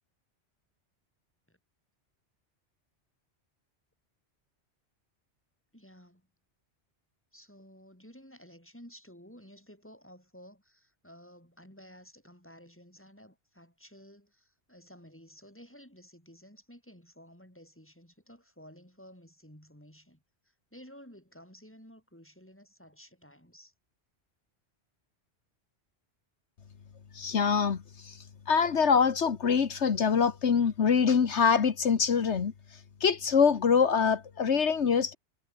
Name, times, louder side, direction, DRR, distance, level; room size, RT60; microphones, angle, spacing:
voice 1, 5.7-6.2 7.3-23.7, equal, 10° left, 7.9 m, -53 dB
voice 2, 27.1-35.2, left 6 dB, 80° left, 1.6 m, -25 dB
omnidirectional pair, 1.2 m